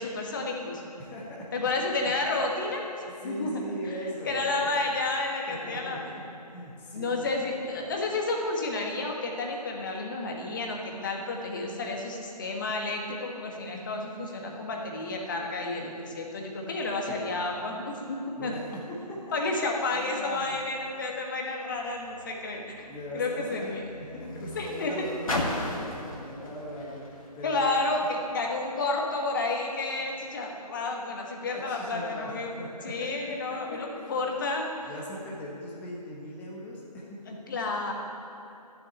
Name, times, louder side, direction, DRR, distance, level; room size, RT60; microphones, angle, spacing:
voice 1, 0.0-0.8 1.5-2.8 3.2-3.5 4.2-6.0 6.9-18.5 19.3-22.9 23.1-23.8 24.5-25.1 27.4-32.5 32.8-34.7 37.3-37.9, left 2 dB, 30° left, 1 dB, 1.5 m, -31 dB
voice 2, 1.0-1.7 2.0-2.1 3.1-4.7 5.5-7.2 17.1-17.2 18.4-19.3 19.6-20.6 22.8-27.7 30.0-30.1 31.5-34.3 34.8-37.8, equal, 10° left, -4 dB, 1.3 m, -40 dB
Car, 21.7-28.3 29.1-29.2, left 1 dB, 55° left, 2.1 m, -37 dB
13.0 x 7.5 x 8.8 m, 2.7 s
figure-of-eight pair, 150°, 21 cm